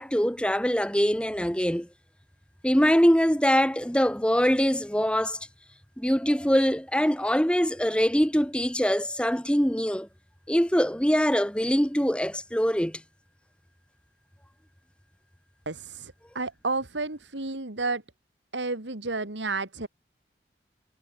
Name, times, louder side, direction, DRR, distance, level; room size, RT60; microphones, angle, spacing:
voice 1, 0.0-1.9 2.6-5.4 6.0-10.1 10.5-13.0, equal, 5° left, 2.1 m, -23 dB
voice 2, 15.7-18.0 18.5-19.9, right 3 dB, 90° right, 2.4 m, -31 dB
head